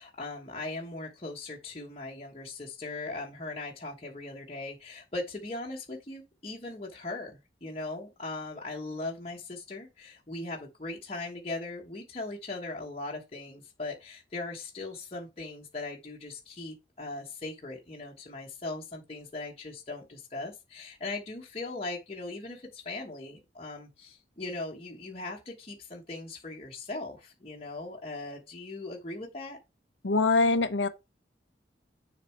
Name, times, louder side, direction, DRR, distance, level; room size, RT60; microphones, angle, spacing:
voice 1, 0.0-29.6, left 2 dB, 35° left, 1.2 m, -39 dB
voice 2, 30.0-30.9, left 3 dB, 90° left, 0.8 m, -23 dB
6.8 x 4.1 x 4.5 m
head